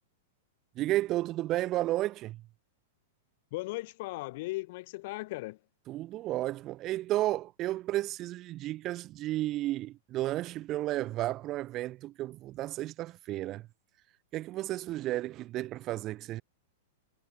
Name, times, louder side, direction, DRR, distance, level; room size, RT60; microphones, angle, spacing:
voice 1, 0.8-2.4 5.9-13.6 14.3-16.4, right 15 dB, 25° right, 0.4 m, -32 dB
voice 2, 3.5-5.6, left 21 dB, 40° left, 0.7 m, -37 dB
supercardioid pair, 175°, 0 cm